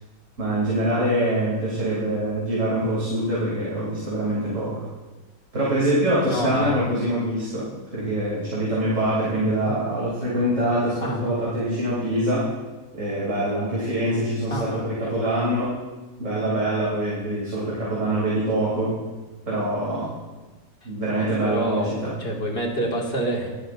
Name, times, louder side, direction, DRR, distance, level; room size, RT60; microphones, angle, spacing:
voice 1, 0.4-4.9 5.5-12.5 12.9-15.8 16.2-19.0 19.5-20.2 20.8-22.1, right 1 dB, 60° right, -8 dB, 3.4 m, -24 dB
voice 2, 6.3-6.9 9.7-9.8 11.0-11.3 14.5-15.1 21.2-21.9 22.2-23.5, equal, 40° left, -1 dB, 2.3 m, -28 dB
19.5 x 11.5 x 2.6 m, 1.2 s
omnidirectional pair, 1.5 m